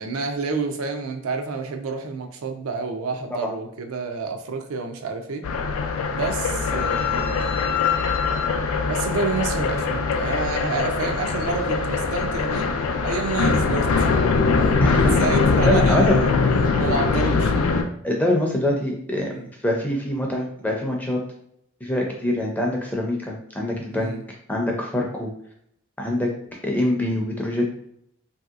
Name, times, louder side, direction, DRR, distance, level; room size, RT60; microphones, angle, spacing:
voice 1, 0.0-5.5 6.1-7.7 8.9-12.7 13.0-14.1 14.6-16.4 16.8-17.5 19.3-19.5 23.9-24.2, right 4 dB, 85° right, 5 dB, 0.4 m, -29 dB
sound 1, 5.4-17.8, left 4 dB, 85° left, 0.4 m, -22 dB
voice 2, 14.8-15.2 15.6-16.2 18.0-19.3 19.6-21.2 21.8-24.1 24.5-25.3 26.0-26.3 26.6-27.7, left 1 dB, 5° left, -1 dB, 0.4 m, -24 dB
3.1 x 2.7 x 2.4 m, 0.71 s
head